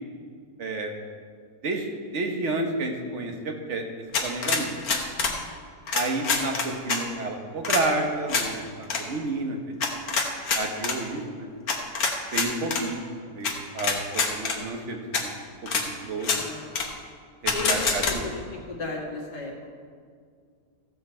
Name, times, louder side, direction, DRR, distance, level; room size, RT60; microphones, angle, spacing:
voice 1, 0.6-0.9 1.6-3.8 4.2-5.1 5.9-9.8 10.5-11.5 12.3-13.5 13.7-15.3 15.6-16.3 17.4-18.3, right 2 dB, 50° right, 3 dB, 1.4 m, -30 dB
sound 1, 4.1-5.4 5.9-7.0 7.6-7.8 8.3-8.5 8.8-9.0 9.8-11.0 11.7-12.8 13.4-13.5 13.8-14.6 15.1-15.2 15.7-15.8 16.2-16.4 16.7-16.9 17.5-18.1, left 4 dB, 65° left, 1.6 m, -25 dB
voice 2, 5.1-5.6 16.3-16.8 17.5-19.7, left 2 dB, 80° left, -2 dB, 2.4 m, -36 dB
15.0 x 7.4 x 4.4 m, 2.1 s
omnidirectional pair, 1.7 m